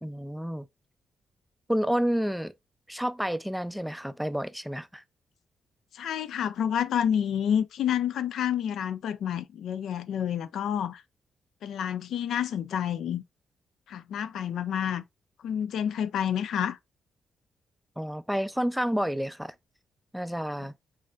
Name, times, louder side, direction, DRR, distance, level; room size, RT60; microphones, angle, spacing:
voice 1, 0.0-0.7 1.7-2.5 2.9-5.0 18.0-19.5 20.1-20.7, equal, ahead, 0.3 m, -29 dB
voice 2, 5.9-11.0 11.6-13.2 13.9-15.0 15.4-16.8, left 9 dB, 80° left, 0.3 m, -29 dB
6.2 x 2.6 x 2.3 m
cardioid pair, 90°, 0 cm